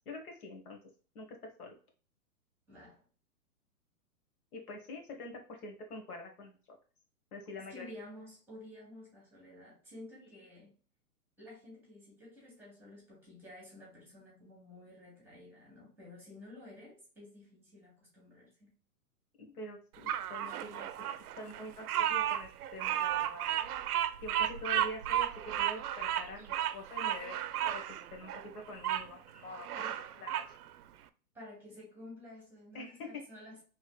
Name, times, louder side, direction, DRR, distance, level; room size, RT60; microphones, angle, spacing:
voice 1, 0.0-0.8 1.1-1.7 4.5-6.5 7.3-7.8 19.4-20.9 21.4-23.5 24.2-27.8 28.1-29.7 30.2-30.6 32.7-33.2, left 2 dB, 65° left, 2 dB, 1.4 m, -45 dB
voice 2, 2.7-3.0 7.7-10.7 11.4-18.7 29.7-30.0 31.3-33.6, left 1 dB, 5° right, -3 dB, 1.5 m, -52 dB
Bird vocalization bird call bird song, 20.1-29.1 29.5-30.5, right 11 dB, 70° right, 0.5 m, -34 dB
4.3 x 3.2 x 2.3 m, 0.38 s
hypercardioid pair, 145°, 47 cm